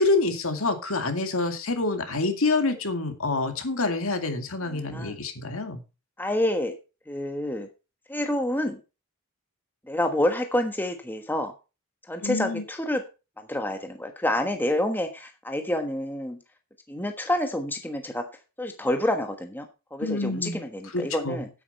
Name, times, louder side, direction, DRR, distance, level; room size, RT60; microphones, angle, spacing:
voice 1, 0.0-5.8 12.2-12.6 20.0-20.6 20.9-21.4, left 3 dB, 65° left, 2.2 m, -27 dB
voice 2, 4.6-5.2 6.2-6.7 7.1-7.7 8.1-8.8 9.9-11.5 12.1-13.0 13.4-16.4 16.9-18.2 18.6-19.7 19.9-21.5, left 1 dB, 10° left, 1.2 m, -28 dB
9.9 x 8.7 x 4.2 m
head